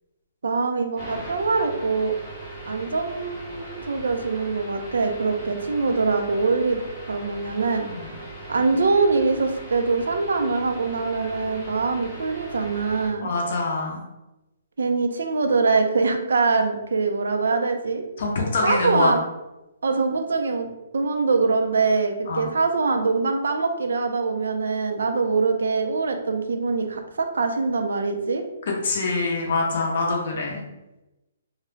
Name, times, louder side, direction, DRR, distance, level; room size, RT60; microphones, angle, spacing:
voice 1, 0.4-2.1 2.7-6.8 7.1-7.9 8.5-13.3 14.8-18.1 18.6-19.2 19.8-20.7 20.9-28.4, right 4 dB, 90° right, 6 dB, 0.4 m, -23 dB
sound 1, 1.0-13.1, right 1 dB, 5° left, 0.7 m, -39 dB
voice 2, 13.2-14.0 18.2-19.1 22.3-22.5 28.7-30.6, left 3 dB, 45° left, -1 dB, 0.5 m, -25 dB
2.4 x 2.0 x 3.1 m, 0.98 s
hypercardioid pair, 180°, 0 cm